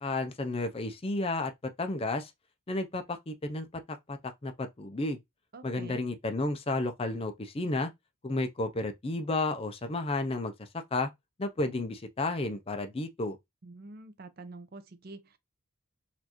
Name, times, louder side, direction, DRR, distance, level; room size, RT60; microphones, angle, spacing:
voice 1, 0.0-1.5 1.8-2.3 2.7-3.7 4.1-4.2 4.4-5.2 5.6-7.9 8.2-11.1 11.4-13.4, left 2 dB, 25° left, 0.4 m, -32 dB
voice 2, 5.5-6.0 13.6-15.4, right 2 dB, 45° right, 0.6 m, -47 dB
4.2 x 2.5 x 2.9 m
head